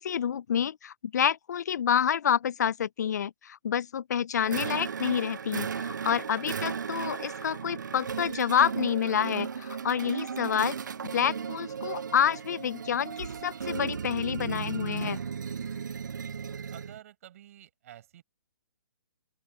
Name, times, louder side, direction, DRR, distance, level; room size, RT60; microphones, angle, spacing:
voice 1, 0.0-10.8 11.1-15.2, left 8 dB, 65° left, 0.5 m, -28 dB
sound 1, 4.5-17.0, right 6 dB, 80° right, 0.5 m, -35 dB
voice 2, 6.4-6.7 16.7-18.2, right 12 dB, 50° right, 6.2 m, -50 dB
open air
hypercardioid pair, 135°, 10 cm